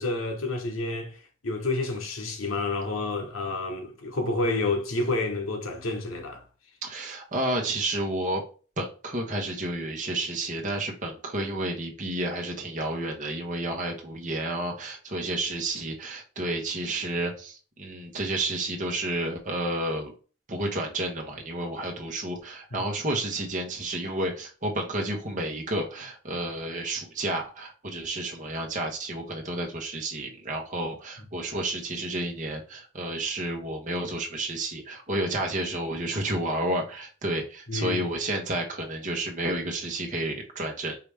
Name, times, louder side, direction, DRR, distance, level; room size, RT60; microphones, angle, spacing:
voice 1, 0.0-6.4 22.7-22.9 37.7-38.1, left 2 dB, 85° left, 1.1 m, -29 dB
voice 2, 6.8-8.4 8.8-20.1 20.5-41.0, right 1 dB, 40° right, 1.1 m, -31 dB
4.8 x 3.0 x 3.3 m
head